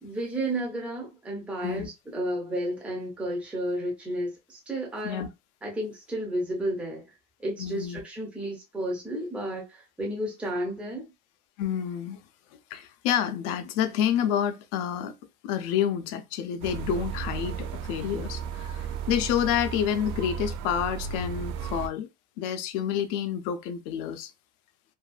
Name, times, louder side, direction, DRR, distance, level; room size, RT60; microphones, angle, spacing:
voice 1, 0.0-5.3 5.6-7.0 7.4-11.1, right 1 dB, 5° right, 0.4 m, -32 dB
voice 2, 7.6-8.0 11.6-12.2 12.7-15.1 15.4-22.1 22.4-24.3, left 9 dB, 70° left, 0.5 m, -28 dB
sound 1, 16.6-21.9, right 7 dB, 80° right, 0.5 m, -34 dB
2.5 x 2.3 x 2.3 m
cardioid pair, 160°, 39 cm